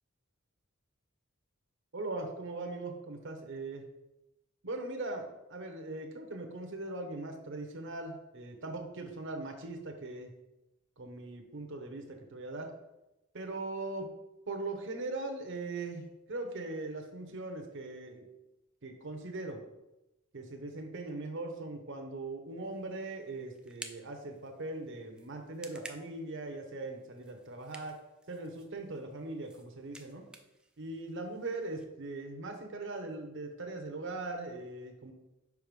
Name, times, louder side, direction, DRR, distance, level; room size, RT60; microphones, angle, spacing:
voice 1, 1.9-3.9 4.6-10.3 11.0-12.7 13.3-14.1 14.5-18.3 18.8-19.6 20.3-28.0 28.3-30.2 30.8-35.1, right 2 dB, 60° right, 4 dB, 0.9 m, -40 dB
sound 1, 22.6-31.8, right 2 dB, 5° right, 0.4 m, -54 dB
5.4 x 4.8 x 5.2 m, 0.97 s
head